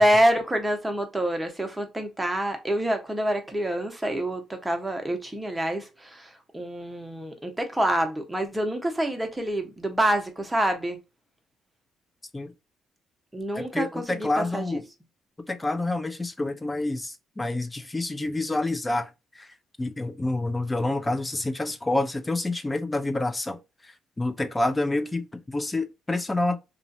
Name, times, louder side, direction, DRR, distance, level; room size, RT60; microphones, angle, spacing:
voice 1, 0.0-11.0 13.3-14.8, right 1 dB, 10° right, 0.9 m, -26 dB
voice 2, 13.5-14.8 15.5-26.6, left 2 dB, 20° left, 0.6 m, -28 dB
3.1 x 2.5 x 2.6 m
cardioid pair, 90°, 0 cm